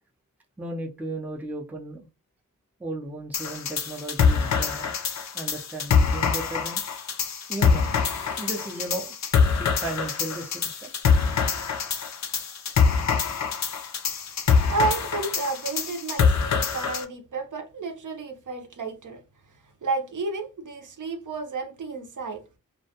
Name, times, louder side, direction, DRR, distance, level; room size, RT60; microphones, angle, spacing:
voice 1, 0.6-2.1 2.8-4.9 5.3-6.8 7.5-9.2 9.4-10.9, right 2 dB, 5° right, 0.5 m, -35 dB
sound 1, 3.3-17.0, left 6 dB, 50° left, 0.5 m, -24 dB
voice 2, 14.3-19.2 19.5-22.4, right 3 dB, 60° right, 0.7 m, -31 dB
2.2 x 2.2 x 2.7 m
cardioid pair, 65°, 35 cm